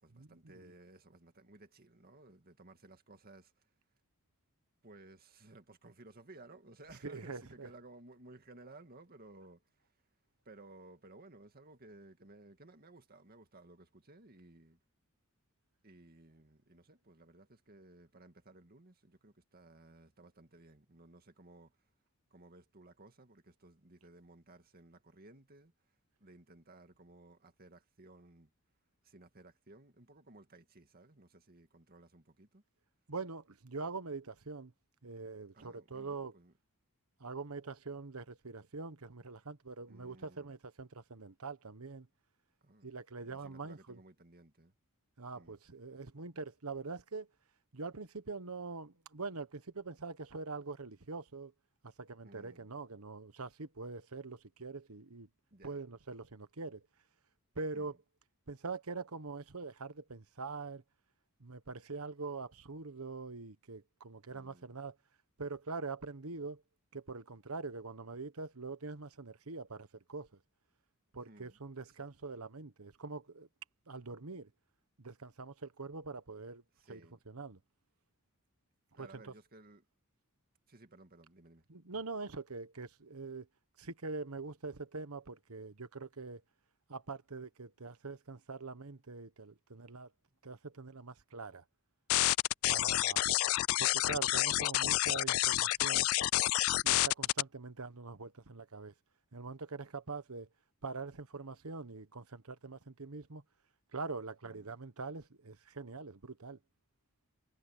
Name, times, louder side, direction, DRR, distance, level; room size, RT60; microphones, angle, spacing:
voice 1, 0.0-3.7 4.8-9.9 10.5-14.8 15.8-21.9 22.3-25.7 26.2-28.5 29.0-32.6 35.5-36.5 39.9-40.6 42.6-42.9 43.2-44.7 45.3-45.6 52.2-52.7 55.5-55.8 57.7-58.0 64.3-64.7 71.3-71.6 71.9-72.1 76.8-77.2 78.9-79.8 80.7-81.7 104.4-104.7, right 2 dB, 45° right, 2.1 m, -58 dB
voice 2, 7.0-7.7 33.1-34.7 35.0-36.3 37.2-42.1 42.8-44.0 45.2-47.3 47.7-51.5 51.8-55.3 55.6-56.8 57.5-58.0 58.5-60.8 61.4-65.0 65.4-66.6 66.9-70.3 71.1-73.5 73.9-74.5 75.0-76.6 76.9-77.6 79.0-79.3 81.7-83.5 83.8-86.4 86.9-90.1 90.4-91.6 92.7-93.2 93.8-96.1 96.8-98.9 99.3-100.5 100.8-103.4 103.9-106.6, right 4 dB, 90° right, 1.3 m, -44 dB
sound 1, 92.1-97.4, left 16 dB, 65° left, 0.3 m, -29 dB
head